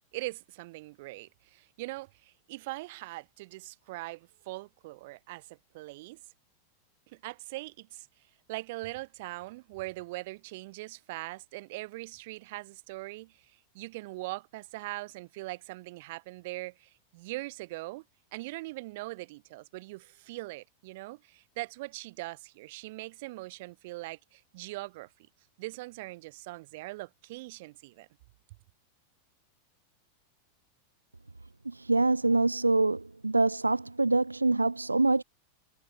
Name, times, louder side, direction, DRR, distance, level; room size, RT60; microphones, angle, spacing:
voice 1, 0.1-6.2 7.1-8.1 8.5-18.0 18.3-25.1 25.6-28.1, right 21 dB, 50° right, 7.8 m, -41 dB
voice 2, 31.7-35.2, right 2 dB, 80° right, 0.5 m, -25 dB
figure-of-eight pair, 90°, 0 cm